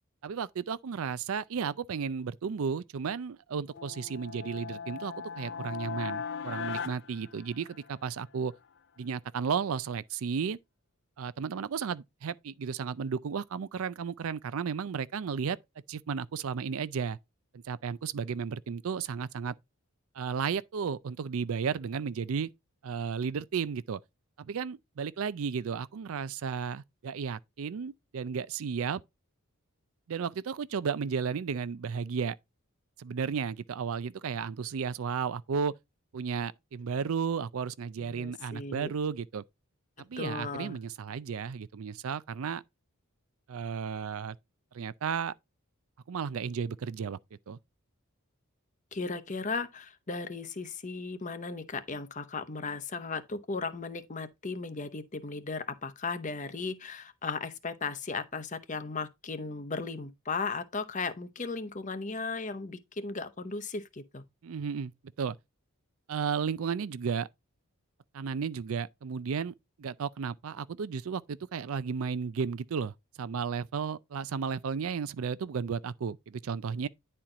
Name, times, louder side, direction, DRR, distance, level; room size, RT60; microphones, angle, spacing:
voice 1, 0.2-8.5 9.0-10.6 11.2-15.6 15.9-17.2 17.5-19.5 20.1-22.5 22.8-24.0 24.4-29.0 30.1-32.4 33.0-35.7 36.1-39.4 40.0-42.6 43.5-44.4 44.7-45.3 46.1-47.2 47.5-47.6 64.4-64.9 65.2-65.4 66.1-67.3 68.1-76.9, right 6 dB, 70° right, 0.4 m, -33 dB
sound 1, 3.7-8.1, left 6 dB, 50° left, 0.3 m, -38 dB
voice 2, 38.0-38.9 40.2-40.8 48.9-64.2, left 4 dB, 35° left, 0.7 m, -36 dB
10.0 x 4.4 x 3.7 m
head